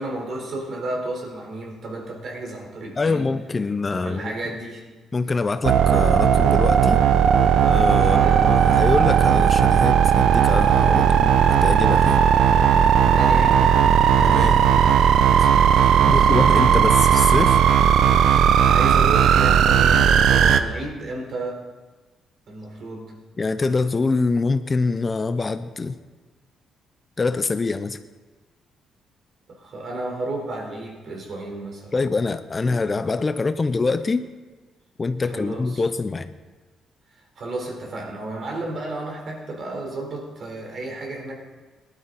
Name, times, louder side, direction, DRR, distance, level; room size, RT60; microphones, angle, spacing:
voice 1, 0.0-3.3 3.9-4.9 8.0-8.4 13.0-13.8 15.9-16.6 18.6-21.6 22.5-23.1 29.5-32.1 32.6-33.1 35.3-35.8 37.4-41.3, right 2 dB, 55° right, 1 dB, 3.9 m, -32 dB
voice 2, 3.0-4.3 5.1-7.0 7.6-12.2 14.2-14.6 15.4-15.5 16.1-17.6 23.4-25.9 27.2-28.0 31.9-34.3 35.0-36.3, left 3 dB, 30° left, 11 dB, 0.6 m, -25 dB
sound 1, 5.6-20.6, right 8 dB, 75° right, 0.8 m, -16 dB
18.5 x 12.0 x 4.1 m, 1.3 s
cardioid pair, 90°, 0 cm